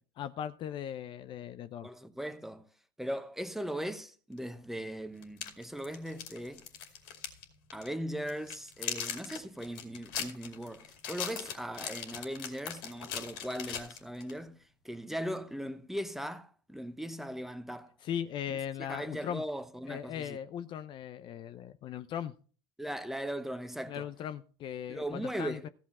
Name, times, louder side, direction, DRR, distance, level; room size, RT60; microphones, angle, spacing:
voice 1, 0.2-1.9 18.0-19.4 19.9-22.3 23.9-25.6, left 9 dB, 40° left, 0.7 m, -38 dB
voice 2, 1.8-2.7 3.0-6.7 7.7-14.6 14.8-17.9 18.5-20.4 22.8-24.1 24.9-25.7, equal, 5° right, 0.9 m, -39 dB
sound 1, 4.4-4.5 5.2-7.4 7.7-7.9 8.3-14.4, left 8 dB, 65° left, 2.4 m, -40 dB
15.0 x 7.1 x 4.2 m
hypercardioid pair, 90°, 12 cm